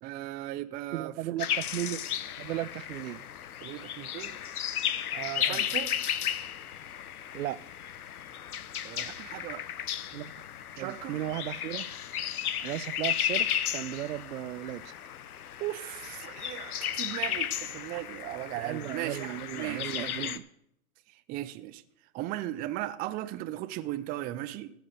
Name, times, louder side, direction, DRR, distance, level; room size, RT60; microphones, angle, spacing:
voice 1, 0.0-1.3 3.6-4.4 5.1-6.1 8.8-9.6 10.8-11.2 15.6-20.4 21.1-21.8 22.1-24.7, right 14 dB, 20° right, 0.5 m, -37 dB
voice 2, 0.9-2.0 2.4-3.2 5.5-5.6 7.3-7.6 10.1-10.3 10.8-11.9 12.6-14.9 17.9-18.0 18.6-20.4, right 13 dB, 65° right, 0.7 m, -35 dB
sound 1, 1.4-20.4, left 10 dB, 80° left, 0.9 m, -34 dB
14.5 x 6.0 x 6.8 m
hypercardioid pair, 110°, 44 cm